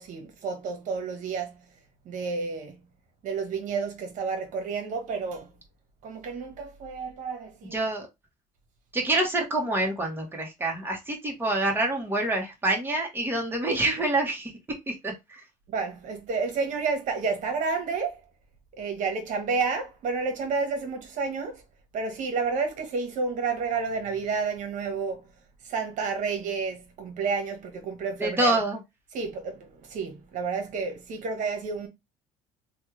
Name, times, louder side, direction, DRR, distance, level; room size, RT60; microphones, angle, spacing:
voice 1, 0.0-1.6 2.0-2.8 3.2-5.5 6.0-7.8 15.7-18.2 18.8-21.6 21.9-25.2 25.6-28.6 29.1-31.9, right 4 dB, 55° right, 1.2 m, -30 dB
voice 2, 7.7-8.1 8.9-14.5 14.9-15.4 28.2-28.8, right 2 dB, 15° right, 1.3 m, -26 dB
3.2 x 2.4 x 3.1 m
cardioid pair, 115°, 15 cm